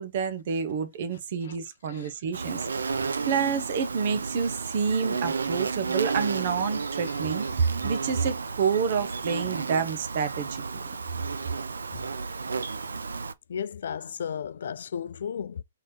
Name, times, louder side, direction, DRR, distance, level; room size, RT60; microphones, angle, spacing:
voice 1, 0.0-3.0 3.2-10.8, right 6 dB, 50° right, 1.0 m, -28 dB
Insect, 2.3-13.3, right 4 dB, 75° right, 0.5 m, -32 dB
voice 2, 13.5-15.6, left 7 dB, 60° left, 0.4 m, -34 dB
4.3 x 3.9 x 3.0 m
figure-of-eight pair, 125°, 0 cm